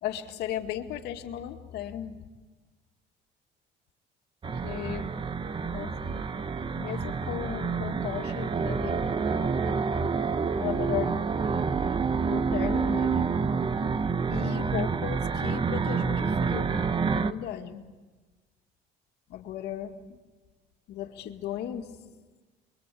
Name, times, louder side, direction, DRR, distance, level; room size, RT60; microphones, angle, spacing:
voice 1, 0.0-2.3 4.6-5.1 5.6-6.3 6.7-9.8 10.6-11.2 12.3-13.3 14.3-17.8 19.3-20.0 20.9-22.0, left 11 dB, 80° left, 2.1 m, -36 dB
sound 1, 4.4-17.3, right 5 dB, 30° right, 1.0 m, -28 dB
29.0 x 23.0 x 8.5 m
cardioid pair, 110°, 17 cm